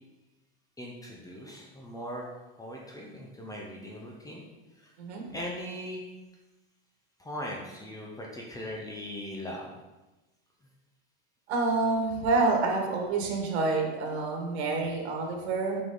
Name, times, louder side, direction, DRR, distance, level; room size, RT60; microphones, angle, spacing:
voice 1, 0.8-2.3 2.6-4.4 4.7-4.9 5.3-6.0 7.2-9.7, equal, 10° left, -2 dB, 0.8 m, -39 dB
voice 2, 11.5-15.8, right 3 dB, 85° right, 1 dB, 1.7 m, -28 dB
5.7 x 5.2 x 3.9 m, 1.1 s
supercardioid pair, 135°, 32 cm